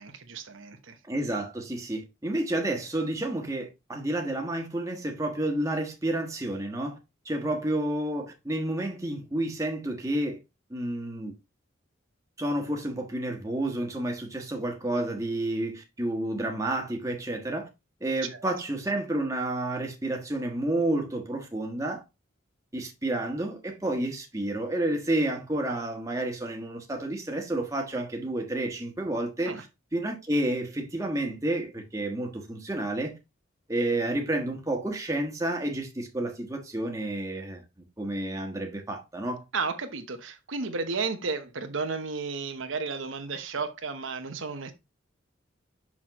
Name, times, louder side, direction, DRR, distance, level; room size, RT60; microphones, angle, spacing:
voice 1, 0.0-1.0 18.3-18.4 29.5-29.6 39.5-44.7, right 4 dB, 85° right, 1.0 m, -33 dB
voice 2, 1.1-7.0 7.2-10.4 10.7-11.3 12.4-17.7 18.0-22.0 22.7-29.6 29.9-33.2 33.7-37.6 38.0-39.4, right 1 dB, 15° right, 1.3 m, -30 dB
6.2 x 5.9 x 3.0 m
head